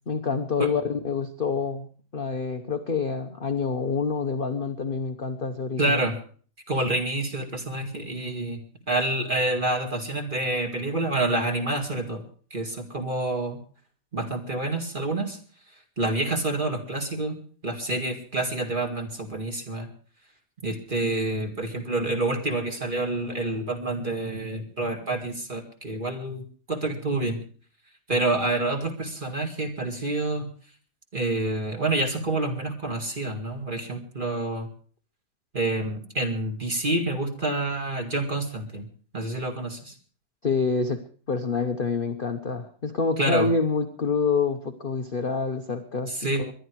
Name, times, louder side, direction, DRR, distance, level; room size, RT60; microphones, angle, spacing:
voice 1, 0.1-6.0 40.4-41.0 41.3-46.1 46.4-46.5, left 4 dB, 35° left, 7 dB, 0.9 m, -27 dB
voice 2, 5.8-6.2 6.7-8.6 8.9-12.2 12.5-13.6 14.1-15.4 16.0-19.9 20.6-27.4 28.1-30.5 31.1-34.7 35.5-38.9 39.1-39.9 43.2-43.5 46.1-46.4, right 2 dB, 25° right, 4 dB, 2.4 m, -28 dB
21.5 x 11.5 x 4.7 m, 0.43 s
omnidirectional pair, 2.1 m